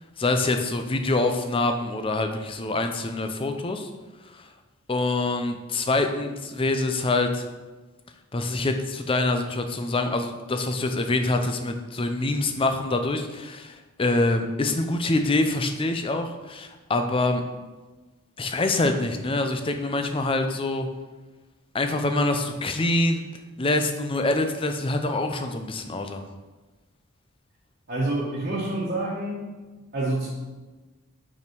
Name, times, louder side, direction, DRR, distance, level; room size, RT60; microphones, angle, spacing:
voice 1, 0.2-3.9 4.3-4.4 4.9-7.4 8.3-17.4 18.4-20.9 21.7-23.2 23.6-26.2, left 2 dB, 25° left, 6 dB, 0.5 m, -25 dB
voice 2, 27.9-29.5 29.9-30.3, right 2 dB, 40° right, -9 dB, 1.4 m, -27 dB
5.4 x 5.2 x 4.6 m, 1.2 s
head